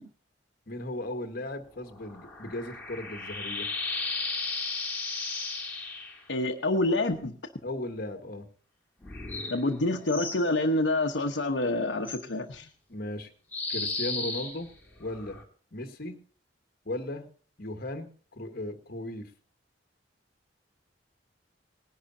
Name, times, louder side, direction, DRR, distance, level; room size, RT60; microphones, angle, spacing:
voice 1, 0.7-3.7 6.9-7.0 7.6-8.5 12.9-13.3 13.7-14.7 15.0-15.4 15.7-16.2 16.8-17.3 17.6-19.3, left 1 dB, 55° left, 6 dB, 1.5 m, -36 dB
sound 1, 1.7-6.2 9.0-10.4 12.0-12.2 13.5-15.4, left 3 dB, 10° left, 2.9 m, -35 dB
voice 2, 6.3-7.3 9.5-12.7, left 2 dB, 75° left, 2 dB, 1.0 m, -27 dB
19.5 x 11.0 x 2.7 m, 0.42 s
head